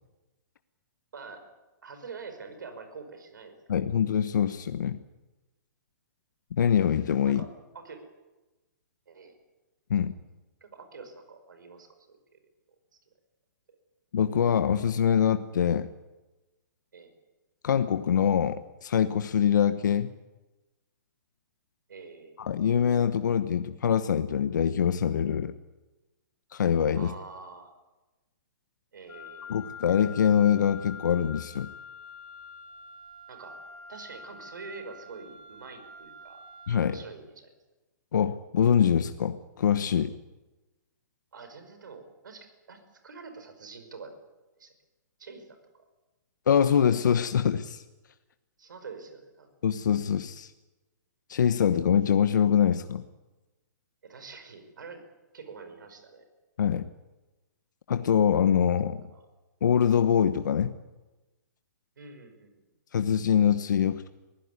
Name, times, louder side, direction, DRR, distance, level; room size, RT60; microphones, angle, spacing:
voice 1, 1.1-1.4 1.8-3.6 7.3-7.5 7.7-8.1 9.1-9.3 10.6-12.4 16.9-17.1 21.9-22.5 26.9-27.7 28.9-29.7 33.3-33.6 33.9-36.4 36.8-37.5 41.3-44.1 44.6-44.7 45.2-45.6 48.6-49.5 54.0-55.0 55.3-56.2 59.1-59.2 62.0-62.5, right 4 dB, 90° right, 8 dB, 5.4 m, -46 dB
voice 2, 3.7-5.0 6.5-7.4 9.9-10.1 14.1-15.9 17.6-20.1 22.4-25.5 26.5-27.1 29.5-31.7 36.7-37.0 38.1-40.1 46.5-47.8 49.6-50.5 51.3-53.0 56.6-56.9 57.9-59.0 59.6-60.7 62.9-64.1, left 8 dB, 75° left, 10 dB, 1.0 m, -24 dB
Wind instrument woodwind instrument, 29.1-36.9, left 4 dB, 15° left, 4.7 m, -46 dB
23.0 x 16.0 x 9.6 m, 1.1 s
hypercardioid pair, 165°, 10 cm